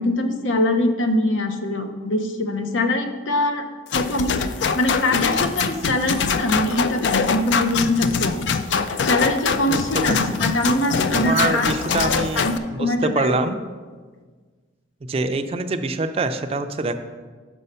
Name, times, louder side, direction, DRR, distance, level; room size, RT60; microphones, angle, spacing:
voice 1, 0.0-3.7 3.9-4.4 4.7-8.5 9.1-11.7 12.0-13.3, left 1 dB, 85° left, 6 dB, 0.7 m, -23 dB
sound 1, 3.9-12.6, left 5 dB, 65° left, 0.4 m, -23 dB
voice 2, 9.7-10.4 11.1-13.6 15.1-16.9, right 3 dB, 30° right, 8 dB, 0.4 m, -25 dB
6.2 x 5.5 x 5.4 m, 1.5 s
head